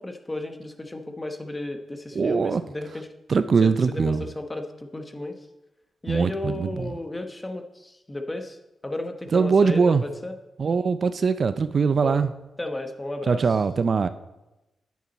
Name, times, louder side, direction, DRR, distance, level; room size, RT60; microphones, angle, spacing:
voice 1, 0.0-3.1 3.6-5.4 6.0-8.6 8.8-10.3 12.0-12.2 12.6-13.4, left 2 dB, 15° left, 6 dB, 1.0 m, -33 dB
voice 2, 2.1-2.6 3.3-4.3 6.1-6.9 9.3-10.0 10.6-12.3 13.3-14.1, right 5 dB, 50° right, 12 dB, 0.4 m, -22 dB
10.0 x 9.4 x 4.1 m, 0.98 s
cardioid pair, 110°, 0 cm